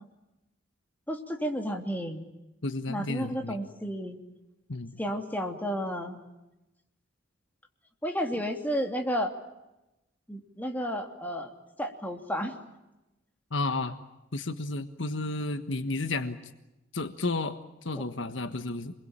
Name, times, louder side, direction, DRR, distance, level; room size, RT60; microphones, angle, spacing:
voice 1, 1.1-2.3 2.9-4.2 5.0-6.2 8.0-9.3 10.3-11.5 11.8-12.6 17.9-18.0, equal, 10° left, 3 dB, 3.0 m, -32 dB
voice 2, 2.6-3.6 4.7-5.0 13.5-14.0 14.3-16.4 16.9-18.9, left 2 dB, 75° left, 9 dB, 1.4 m, -32 dB
28.0 x 22.0 x 8.8 m, 0.96 s
head